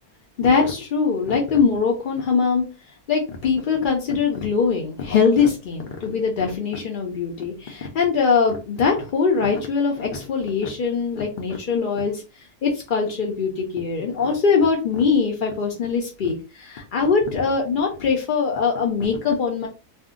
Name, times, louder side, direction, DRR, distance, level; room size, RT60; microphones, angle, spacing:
voice 1, 0.4-2.6 3.1-12.2 12.6-19.7, left 5 dB, 75° left, 1 dB, 0.4 m, -22 dB
2.6 x 2.1 x 3.7 m, 0.30 s
omnidirectional pair, 1.6 m